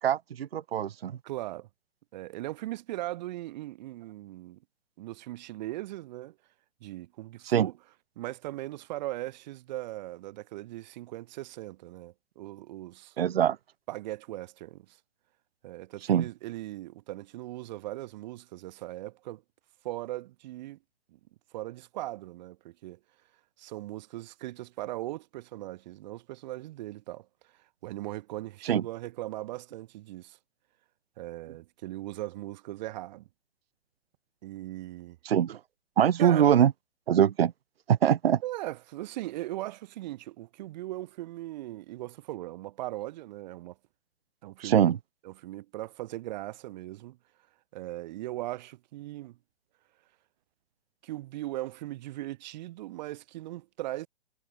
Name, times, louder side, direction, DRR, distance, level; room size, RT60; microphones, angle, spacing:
voice 1, 0.0-1.1 7.5-7.7 13.2-13.6 16.1-16.3 28.6-28.8 35.3-35.6 36.0-36.7 37.1-37.5 37.9-38.4 44.6-45.0, right 9 dB, 60° right, 0.8 m, -23 dB
voice 2, 1.2-1.7 2.1-4.6 5.0-6.4 6.8-7.8 8.2-13.2 13.9-15.0 15.6-19.4 19.8-20.8 21.1-21.2 21.5-23.0 23.6-27.5 27.8-30.4 31.2-33.3 34.4-35.2 36.2-36.5 38.4-43.8 44.4-44.9 45.2-47.2 47.7-49.4 51.0-54.1, right 16 dB, 40° right, 5.2 m, -39 dB
figure-of-eight pair, 125°, 33 cm